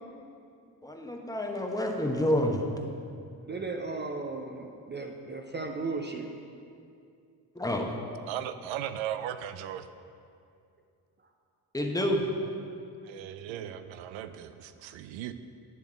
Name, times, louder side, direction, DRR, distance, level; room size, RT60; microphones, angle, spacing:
voice 1, 0.8-2.7 7.5-8.0 11.7-12.3, left 1 dB, 10° left, 1 dB, 0.9 m, -28 dB
voice 2, 3.4-6.3 13.5-13.6, right 3 dB, 25° right, 3 dB, 0.5 m, -36 dB
voice 3, 8.3-9.9 13.0-15.3, right 10 dB, 70° right, 11 dB, 0.5 m, -37 dB
9.3 x 3.5 x 4.6 m, 2.4 s
hypercardioid pair, 50°, 48 cm